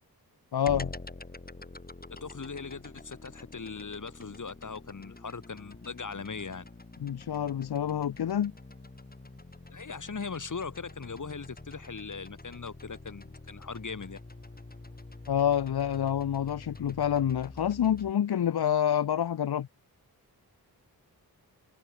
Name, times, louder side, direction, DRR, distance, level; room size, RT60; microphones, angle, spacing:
voice 1, 0.5-0.9 7.0-8.5 15.3-19.7, left 9 dB, 85° left, 1.0 m, -27 dB
sound 1, 0.7-18.1, left 2 dB, 25° left, 4.9 m, -46 dB
voice 2, 2.1-6.7 9.7-14.2, left 5 dB, 50° left, 4.2 m, -40 dB
wide cardioid pair, 85°, 38 cm